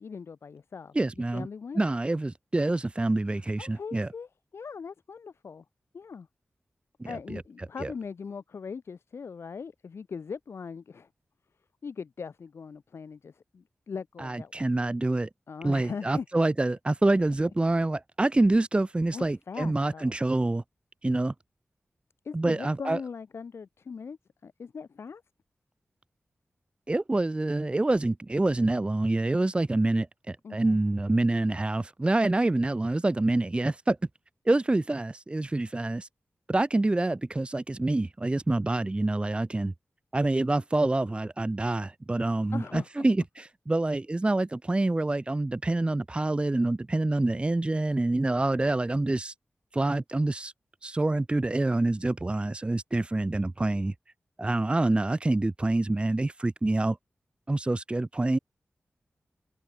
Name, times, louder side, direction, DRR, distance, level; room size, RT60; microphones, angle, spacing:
voice 1, 0.0-1.8 3.6-5.6 5.9-6.3 7.0-11.1 11.8-14.5 15.5-16.2 19.1-20.2 22.2-24.2 24.4-25.2 30.4-30.8 42.5-43.0, left 5 dB, 85° left, 1.3 m, -40 dB
voice 2, 0.9-1.5 1.8-4.1 7.0-7.4 7.8-7.9 14.2-15.3 15.6-20.6 21.0-21.3 22.3-23.0 26.9-34.0 34.5-36.1 36.5-39.7 40.1-49.3 49.7-50.5 50.8-53.9 54.4-57.0 57.5-58.4, right 2 dB, 25° right, 0.7 m, -26 dB
wide cardioid pair, 70°, 4 cm